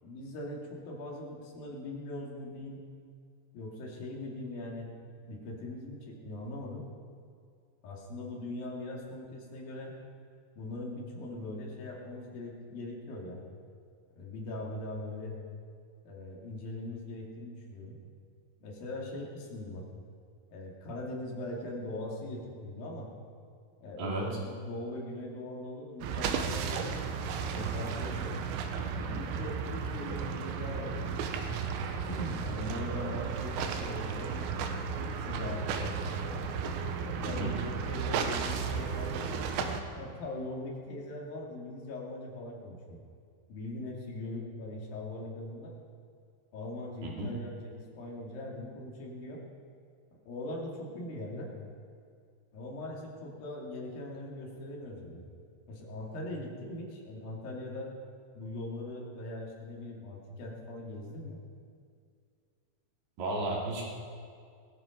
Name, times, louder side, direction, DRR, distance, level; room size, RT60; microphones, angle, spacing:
voice 1, 0.0-2.8 3.5-4.9 5.2-6.9 7.8-9.9 10.6-13.4 14.2-15.4 16.1-18.0 18.6-19.9 20.5-23.1 23.8-27.0 27.5-28.5 29.0-31.2 32.1-34.7 35.2-36.5 37.1-39.5 40.0-43.0 43.5-45.7 46.5-49.4 50.3-51.5 52.5-55.2 55.7-57.9 58.4-61.4, left 1 dB, 55° left, -2 dB, 4.0 m, -41 dB
sound 1, 26.0-39.8, right 6 dB, 80° right, 3.1 m, -34 dB
voice 2, 47.0-47.3 63.2-63.8, right 2 dB, 65° right, -3 dB, 4.5 m, -33 dB
18.5 x 14.5 x 5.2 m, 2.2 s
omnidirectional pair, 5.2 m